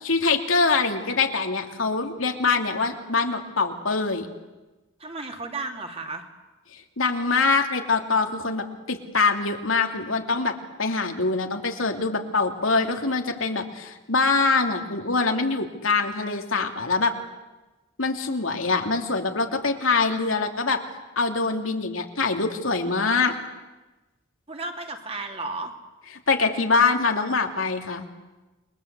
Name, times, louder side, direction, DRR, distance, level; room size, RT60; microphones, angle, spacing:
voice 1, 0.0-4.3 7.0-17.1 18.0-20.8 21.2-23.3 26.3-28.1, left 4 dB, 90° left, 4 dB, 2.8 m, -24 dB
voice 2, 5.0-6.2 24.5-25.7, right 3 dB, 30° right, 4 dB, 2.8 m, -33 dB
28.5 x 22.5 x 8.2 m, 1.1 s
head